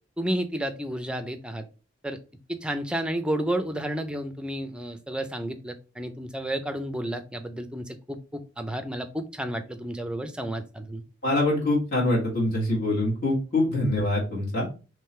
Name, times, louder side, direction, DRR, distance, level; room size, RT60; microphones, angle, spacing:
voice 1, 0.2-1.7 2.0-2.2 2.5-11.0, right 1 dB, 5° right, 8 dB, 0.4 m, -31 dB
voice 2, 11.2-14.7, left 1 dB, 50° left, -5 dB, 1.7 m, -24 dB
3.7 x 3.2 x 4.2 m, 0.33 s
head